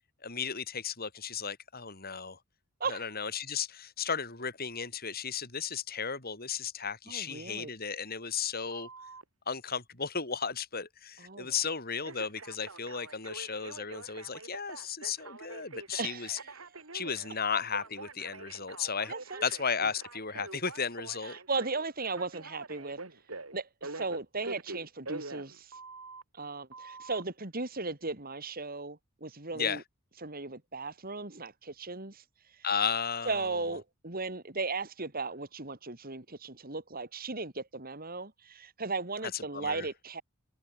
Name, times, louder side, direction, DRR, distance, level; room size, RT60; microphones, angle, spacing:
voice 1, 0.2-2.4 2.9-8.9 9.5-16.4 16.9-19.1 19.4-21.4 29.5-29.8 32.6-33.6 39.3-39.9, left 6 dB, 45° left, 7.7 m, -34 dB
voice 2, 7.1-7.7 11.2-11.5 16.0-16.5 19.1-19.4 21.2-23.0 23.5-25.7 26.3-29.8 30.2-32.2 33.2-40.2, right 3 dB, 45° right, 3.5 m, -36 dB
Telephone, 8.7-9.2 12.0-26.2 26.7-27.2, right 3 dB, 80° right, 5.7 m, -45 dB
head